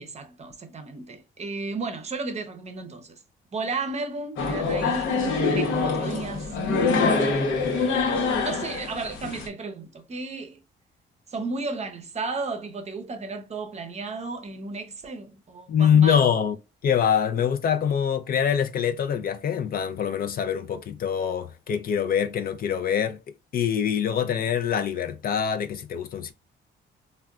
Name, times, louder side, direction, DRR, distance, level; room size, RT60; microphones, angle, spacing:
voice 1, 0.0-3.2 3.5-6.5 7.8-10.6 11.3-16.2, right 3 dB, 35° right, 0.6 m, -34 dB
sound 1, 4.4-9.5, left 4 dB, 90° left, 0.9 m, -25 dB
voice 2, 15.7-16.5 16.8-23.2 23.5-26.3, left 8 dB, 50° left, 0.4 m, -24 dB
3.5 x 2.2 x 2.3 m
cardioid pair, 90°, 20 cm